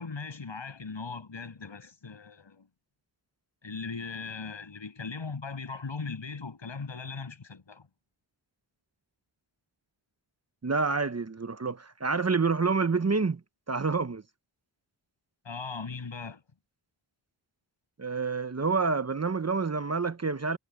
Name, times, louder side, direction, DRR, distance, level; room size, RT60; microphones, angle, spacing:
voice 1, 0.0-2.7 3.6-7.9 15.4-16.4, left 4 dB, 65° left, 6.5 m, -39 dB
voice 2, 10.6-13.4 13.7-14.2 18.0-20.6, right 4 dB, 30° right, 1.0 m, -28 dB
cardioid pair, 50°, 48 cm